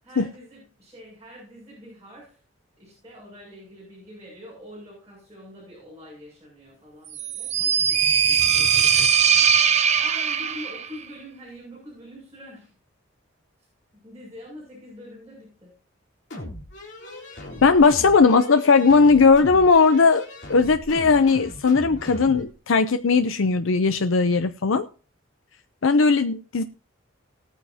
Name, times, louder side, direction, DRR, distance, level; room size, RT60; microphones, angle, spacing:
voice 1, 0.0-2.4 2.8-8.1 8.5-12.7 13.9-15.7, left 1 dB, 15° right, 6.7 m, -45 dB
sound 1, 7.1-10.9, right 7 dB, 35° right, 0.8 m, -20 dB
sound 2, 16.3-22.5, left 1 dB, 65° left, 3.6 m, -39 dB
voice 2, 17.6-20.2 20.5-24.9 25.8-26.6, left 4 dB, 85° left, 0.6 m, -18 dB
19.0 x 9.1 x 2.8 m
head